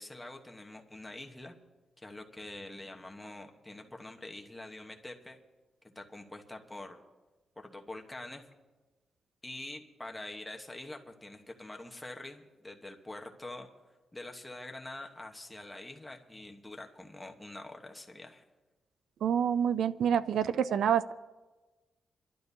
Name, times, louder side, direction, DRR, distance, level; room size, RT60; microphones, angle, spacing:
voice 1, 0.0-1.6 2.0-5.4 5.8-7.0 7.6-8.5 9.4-13.7 14.1-18.4, left 2 dB, 10° left, 2 dB, 1.0 m, -45 dB
voice 2, 19.2-21.1, right 8 dB, 80° right, 14 dB, 0.4 m, -27 dB
29.5 x 12.0 x 2.7 m, 1.2 s
wide cardioid pair, 170°, 0 cm